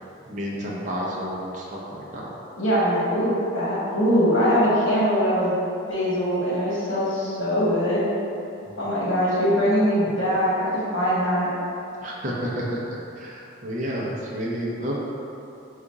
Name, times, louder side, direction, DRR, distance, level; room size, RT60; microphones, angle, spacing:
voice 1, 0.3-2.3 8.7-8.9 10.0-10.2 12.0-14.9, equal, 40° right, -5 dB, 0.5 m, -31 dB
voice 2, 2.6-5.5 5.9-8.0 8.8-11.5, equal, 80° left, -8 dB, 1.3 m, -22 dB
3.8 x 2.4 x 4.6 m, 2.8 s
head